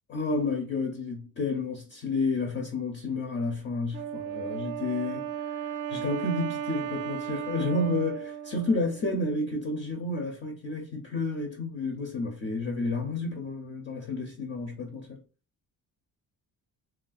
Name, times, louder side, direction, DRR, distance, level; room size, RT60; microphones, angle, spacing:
voice 1, 0.1-15.2, left 2 dB, 30° left, 0.5 m, -31 dB
Wind instrument woodwind instrument, 3.9-9.3, right 9 dB, 55° right, 0.4 m, -35 dB
3.1 x 2.3 x 2.4 m
cardioid pair, 155°, 37 cm